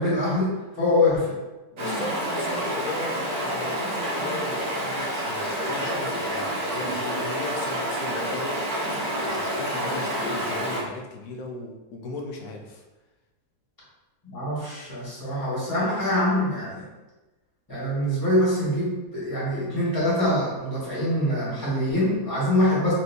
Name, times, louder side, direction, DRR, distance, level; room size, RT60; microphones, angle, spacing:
voice 1, 0.0-1.3 14.2-16.8 17.7-22.9, left 1 dB, 15° left, -7 dB, 1.4 m, -24 dB
voice 2, 1.7-8.8 9.2-12.8, left 3 dB, 70° left, 2 dB, 1.0 m, -37 dB
Stream, 1.8-10.8, equal, 70° right, 1.4 m, -28 dB
4.3 x 3.2 x 2.7 m, 1.1 s
omnidirectional pair, 1.6 m